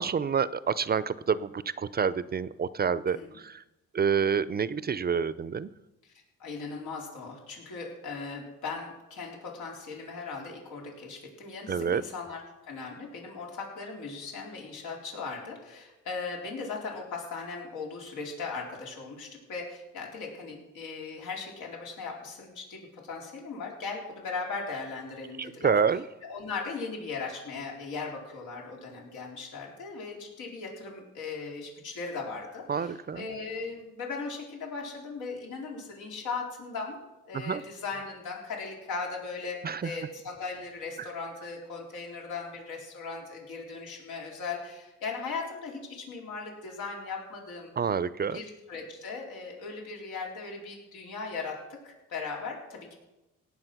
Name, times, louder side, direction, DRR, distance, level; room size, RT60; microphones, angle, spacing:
voice 1, 0.0-3.6 3.9-5.7 11.7-12.0 25.4-26.0 32.7-33.3 37.3-37.6 39.6-39.9 41.0-41.1 47.8-48.4, right 6 dB, 30° right, 17 dB, 0.5 m, -28 dB
voice 2, 6.4-25.7 26.2-37.0 37.3-47.7 48.3-53.0, left 4 dB, 85° left, -1 dB, 4.0 m, -38 dB
18.0 x 7.3 x 6.0 m, 0.98 s
cardioid pair, 90°, 30 cm